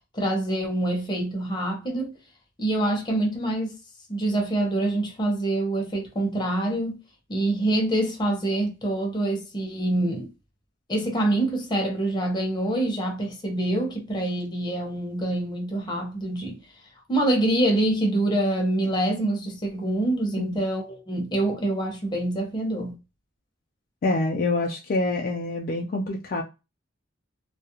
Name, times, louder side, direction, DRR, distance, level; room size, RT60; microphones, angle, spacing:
voice 1, 0.1-2.2 2.6-3.8 4.1-7.0 7.3-10.3 10.9-16.6 17.1-22.9, right 1 dB, 25° left, 0.8 m, -25 dB
voice 2, 24.0-26.4, left 2 dB, 50° left, 0.3 m, -26 dB
2.3 x 2.1 x 2.8 m
head